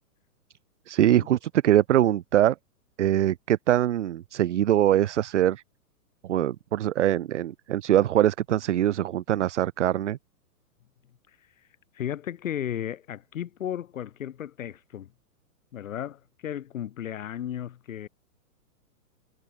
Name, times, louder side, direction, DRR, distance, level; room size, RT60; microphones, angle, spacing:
voice 1, 0.9-2.5 3.0-5.6 6.2-10.2, right 12 dB, 50° right, 1.1 m, -23 dB
voice 2, 11.9-15.1 15.7-18.1, left 10 dB, 55° left, 6.6 m, -34 dB
hypercardioid pair, 170°, 46 cm